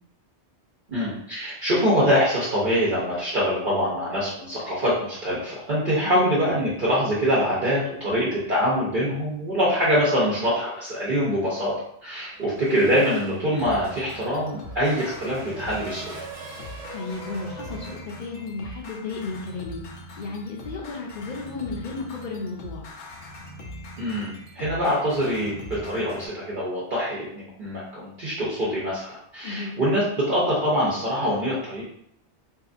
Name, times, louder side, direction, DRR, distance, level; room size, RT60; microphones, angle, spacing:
voice 1, 0.9-11.7 12.0-16.3 24.0-31.8, equal, 50° right, -8 dB, 0.8 m, -24 dB
Race car auto racing / Accelerating revving vroom, 12.3-18.0, right 3 dB, 80° right, 0.9 m, -42 dB
sound 1, 13.5-26.3, left 1 dB, 90° left, 0.9 m, -41 dB
voice 2, 16.9-19.8 20.2-22.8 29.4-29.7, left 3 dB, 55° left, -1 dB, 0.7 m, -33 dB
2.7 x 2.4 x 2.4 m, 0.70 s
omnidirectional pair, 1.1 m